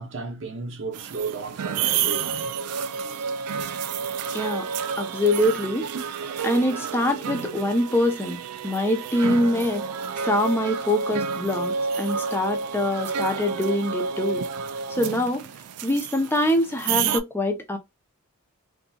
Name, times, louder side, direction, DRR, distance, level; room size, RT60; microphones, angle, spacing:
voice 1, 0.0-2.5 4.8-5.2 5.9-6.0, right 4 dB, 60° right, 0.7 m, -34 dB
sound 1, 0.9-17.2, right 6 dB, 85° right, 0.3 m, -30 dB
voice 2, 4.3-4.7 5.0-5.9 6.4-9.9 10.2-14.4 15.0-15.5 15.8-17.8, left 1 dB, 10° left, 0.5 m, -24 dB
2.7 x 2.5 x 2.3 m
head